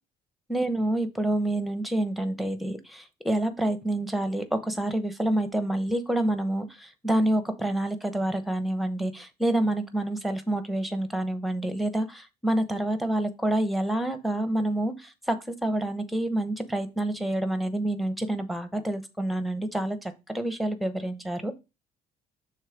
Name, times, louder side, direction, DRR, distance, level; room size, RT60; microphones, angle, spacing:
voice 1, 0.5-21.6, right 1 dB, ahead, 9 dB, 1.0 m, -28 dB
6.4 x 3.6 x 5.1 m, 0.26 s
cardioid pair, 110°, 17 cm